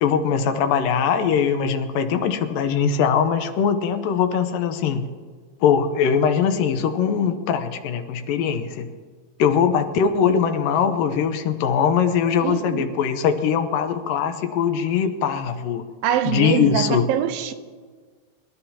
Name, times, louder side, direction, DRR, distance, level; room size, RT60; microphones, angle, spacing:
voice 1, 0.0-5.0 5.6-8.9 9.4-15.8 16.3-17.0, left 7 dB, 80° left, 2.4 m, -21 dB
voice 2, 12.4-12.9 16.0-17.5, right 9 dB, 85° right, 2.6 m, -24 dB
26.5 x 12.5 x 2.9 m
omnidirectional pair, 4.1 m